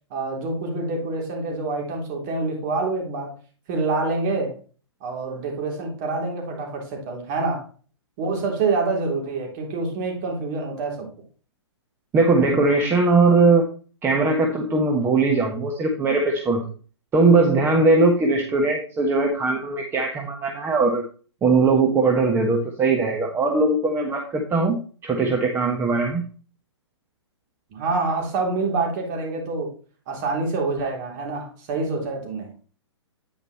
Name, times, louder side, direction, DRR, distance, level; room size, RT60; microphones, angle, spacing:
voice 1, 0.1-3.3 3.7-4.5 5.0-7.7 8.2-11.1 27.7-29.7 30.1-32.5, right 3 dB, 40° right, 0 dB, 3.5 m, -26 dB
voice 2, 12.1-13.6 14.0-16.6 17.1-21.0 21.4-24.8 25.0-26.2, right 3 dB, 15° right, 1 dB, 1.2 m, -20 dB
9.3 x 5.1 x 4.2 m, 0.39 s
figure-of-eight pair, 120°, 15 cm